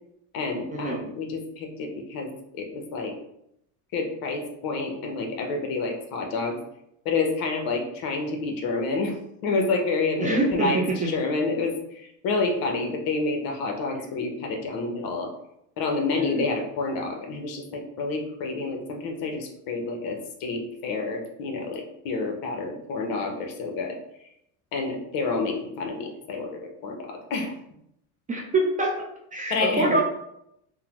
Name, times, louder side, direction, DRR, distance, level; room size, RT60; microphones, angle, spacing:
voice 1, 0.3-3.1 3.9-6.6 7.0-9.1 9.4-15.3 15.8-24.0 24.7-27.5 29.5-30.0, left 3 dB, 50° left, 2 dB, 0.8 m, -29 dB
voice 2, 10.2-11.1 16.1-16.4 28.3-28.9 29.3-30.0, right 2 dB, 20° right, -2 dB, 0.5 m, -25 dB
3.6 x 2.1 x 2.9 m, 0.79 s
supercardioid pair, 105°, 44 cm